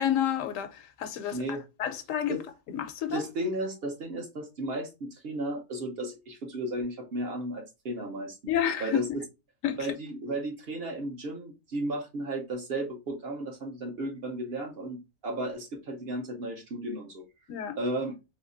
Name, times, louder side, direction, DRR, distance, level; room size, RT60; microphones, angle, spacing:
voice 1, 0.0-1.4 1.8-2.4 2.7-3.2 8.5-9.2 9.6-9.8 17.5-17.8, left 10 dB, 75° left, 0.9 m, -29 dB
voice 2, 1.3-1.6 2.3-2.4 3.1-8.4 8.8-9.2 9.8-17.3 17.8-18.1, right 1 dB, 50° right, 0.9 m, -34 dB
3.4 x 2.8 x 2.5 m
omnidirectional pair, 1.4 m